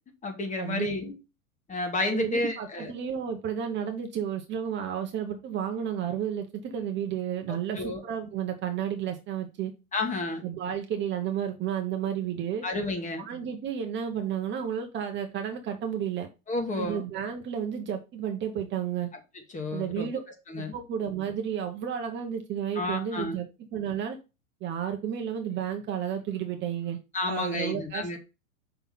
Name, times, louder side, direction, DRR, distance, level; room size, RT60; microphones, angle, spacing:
voice 1, 0.2-1.1 1.7-2.9 7.7-8.0 9.9-10.4 12.6-13.3 16.5-17.0 19.5-20.1 20.5-20.7 22.7-23.4 27.1-28.2, left 2 dB, 20° left, 1.5 m, -31 dB
voice 2, 2.1-9.7 10.4-12.6 13.2-16.3 16.8-19.1 19.7-20.2 20.6-24.2 24.6-27.0 27.3-28.2, right 9 dB, 25° right, 0.9 m, -32 dB
5.8 x 3.4 x 5.8 m
hypercardioid pair, 105°, 42 cm